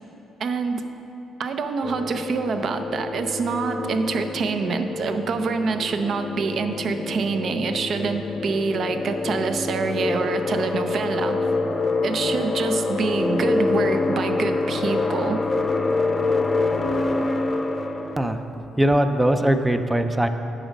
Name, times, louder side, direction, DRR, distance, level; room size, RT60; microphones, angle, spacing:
voice 1, 0.4-0.9 1.4-11.4 12.0-15.4, right 4 dB, 60° right, 8 dB, 0.6 m, -26 dB
sound 1, 1.8-18.3, left 3 dB, 30° left, 0.6 m, -26 dB
voice 2, 18.8-20.3, right 1 dB, 10° right, 8 dB, 0.4 m, -20 dB
9.0 x 5.0 x 6.3 m, 3.0 s
cardioid pair, 90°, 0 cm